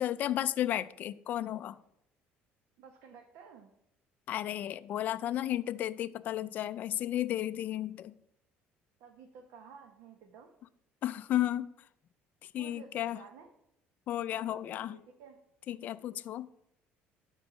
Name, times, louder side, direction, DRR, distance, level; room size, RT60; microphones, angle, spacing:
voice 1, 0.0-1.8 4.3-8.1 11.0-11.7 12.4-13.2 14.1-15.0 15.7-16.5, left 12 dB, 40° left, 0.3 m, -33 dB
voice 2, 2.8-3.7 9.0-10.5 12.5-13.5 14.3-15.4, right 6 dB, 75° right, 1.2 m, -53 dB
12.0 x 4.5 x 6.3 m
cardioid pair, 175°, 4 cm